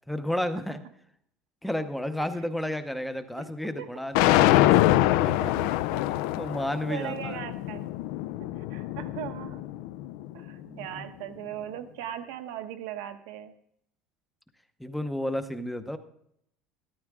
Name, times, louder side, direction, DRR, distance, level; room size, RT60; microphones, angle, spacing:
voice 1, 0.1-0.8 1.6-4.8 5.4-5.5 5.9-6.0 6.4-7.4 10.6-11.0 14.8-16.0, left 1 dB, ahead, 9 dB, 0.7 m, -32 dB
sound 1, 4.1-10.3, left 15 dB, 70° left, 0.4 m, -25 dB
voice 2, 6.8-7.9 8.7-9.7 10.3-13.5, right 11 dB, 75° right, 8 dB, 1.1 m, -38 dB
13.5 x 13.0 x 3.6 m, 0.73 s
cardioid pair, 165°, 0 cm